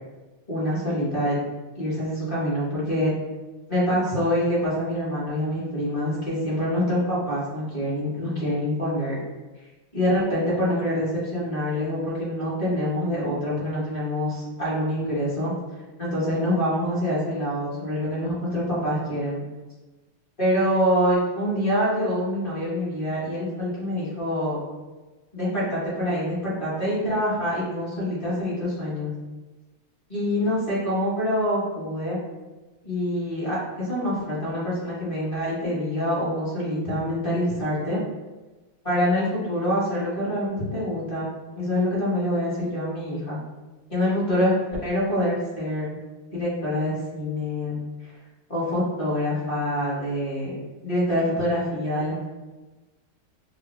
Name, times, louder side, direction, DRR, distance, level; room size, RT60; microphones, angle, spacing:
voice 1, 0.5-1.4 1.7-3.1 3.7-9.2 9.9-15.6 16.0-19.4 20.4-24.6 25.3-29.1 30.1-32.2 32.8-38.0 38.8-41.3 41.5-43.4 43.9-44.6 44.8-45.9 46.3-47.7 48.0-48.1 48.5-50.6 50.8-52.2, equal, 25° left, -10 dB, 0.8 m, -25 dB
3.3 x 2.4 x 3.0 m, 1.2 s
omnidirectional pair, 2.3 m